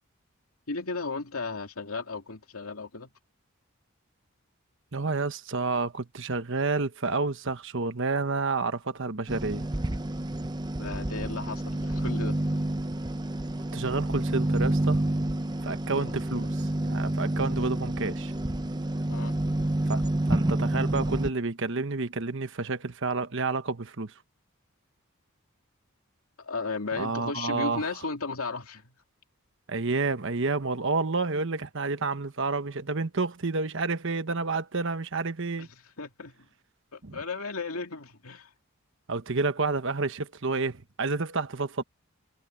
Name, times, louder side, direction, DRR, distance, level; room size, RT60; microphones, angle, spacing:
voice 1, 0.7-3.1 10.7-12.4 15.9-16.1 19.1-19.4 26.4-28.9 35.6-35.7 36.0-36.5 36.9-38.5, left 3 dB, 80° left, 2.5 m, -35 dB
voice 2, 4.9-9.7 13.7-15.0 15.6-18.3 19.9-24.1 26.9-27.9 29.7-35.7 37.0-37.2 39.1-41.8, right 3 dB, 60° right, 1.2 m, -30 dB
sound 1, 9.3-21.3, right 1 dB, 20° right, 0.7 m, -29 dB
head